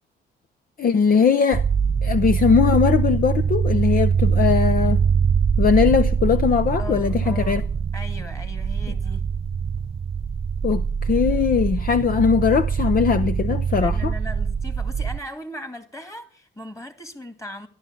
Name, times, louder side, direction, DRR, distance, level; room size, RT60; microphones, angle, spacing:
voice 1, 0.8-1.6 2.0-5.0 5.6-7.6 10.6-14.1, left 6 dB, 45° left, 0.7 m, -20 dB
sound 1, 1.5-15.2, right 6 dB, 30° right, 0.6 m, -23 dB
voice 2, 6.8-7.7 7.9-9.2 13.7-17.7, left 1 dB, 15° left, 2.5 m, -38 dB
13.0 x 11.5 x 7.1 m
cardioid pair, 90°, 20 cm